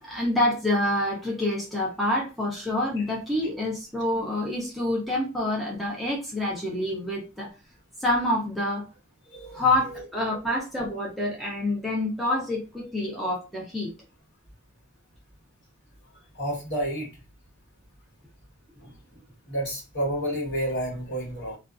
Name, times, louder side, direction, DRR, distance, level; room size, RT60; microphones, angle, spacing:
voice 1, 0.0-7.5 8.0-8.9 9.5-13.9, left 1 dB, ahead, -4 dB, 0.5 m, -27 dB
voice 2, 9.3-9.6 16.4-17.1 18.8-18.9 19.5-21.6, right 1 dB, 50° left, -1 dB, 1.2 m, -30 dB
2.4 x 2.3 x 2.4 m, 0.29 s
head